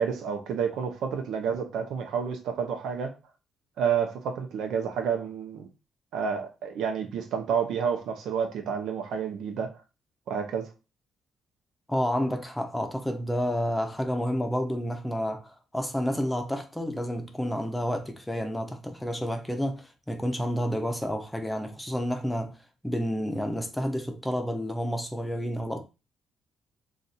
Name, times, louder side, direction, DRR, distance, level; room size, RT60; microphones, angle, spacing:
voice 1, 0.0-3.1 3.8-5.7 6.1-9.7 10.3-10.7, right 7 dB, 80° right, 0.7 m, -29 dB
voice 2, 11.9-22.6 22.8-25.8, equal, 5° left, 0.6 m, -30 dB
2.5 x 2.5 x 4.1 m
cardioid pair, 90°, 0 cm